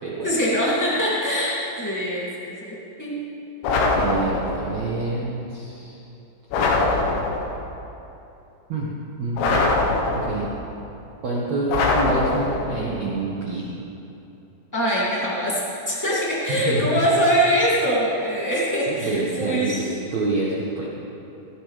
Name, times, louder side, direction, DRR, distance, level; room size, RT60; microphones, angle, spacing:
voice 1, 0.2-3.2 14.7-15.6 15.8-19.9, equal, 15° left, -8 dB, 0.5 m, -23 dB
sound 1, 3.6-4.7 6.5-7.6 9.4-10.5 11.7-12.8, left 3 dB, 75° left, 3.6 m, -22 dB
voice 2, 3.9-6.0 8.7-8.9 9.2-9.7 10.1-10.5 11.2-13.8 16.5-17.0 18.9-20.9, right 2 dB, 80° right, -6 dB, 1.5 m, -27 dB
17.5 x 15.5 x 3.4 m, 2.9 s
omnidirectional pair, 5.6 m